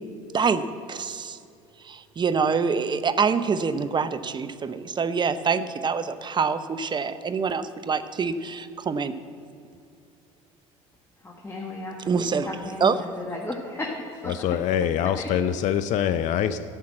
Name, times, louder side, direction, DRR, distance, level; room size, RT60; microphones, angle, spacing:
voice 1, 0.3-1.4 1.8-9.2 12.1-12.5 12.8-13.0, right 5 dB, 30° right, 11 dB, 0.7 m, -25 dB
voice 2, 11.2-14.3 15.2-15.3, left 2 dB, 15° left, -1 dB, 1.5 m, -35 dB
voice 3, 14.3-16.6, left 9 dB, 50° left, 11 dB, 0.5 m, -24 dB
12.5 x 5.8 x 7.6 m, 2.5 s
hypercardioid pair, 70°, 16 cm